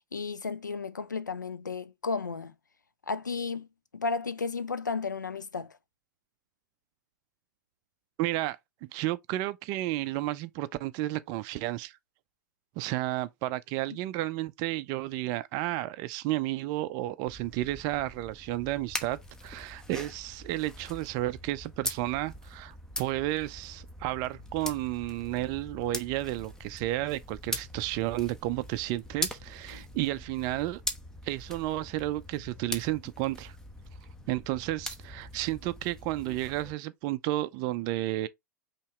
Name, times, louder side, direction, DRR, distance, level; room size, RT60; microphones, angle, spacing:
voice 1, 0.0-2.5 3.1-3.7 3.9-5.8 29.7-29.8, left 4 dB, 85° left, 0.5 m, -33 dB
voice 2, 8.2-12.0 12.8-30.8 31.2-33.6 34.3-38.3, right 16 dB, 40° right, 0.4 m, -32 dB
sound 1, 17.3-36.7, left 1 dB, 5° left, 1.0 m, -41 dB
5.5 x 2.9 x 3.3 m
figure-of-eight pair, 95°, 10 cm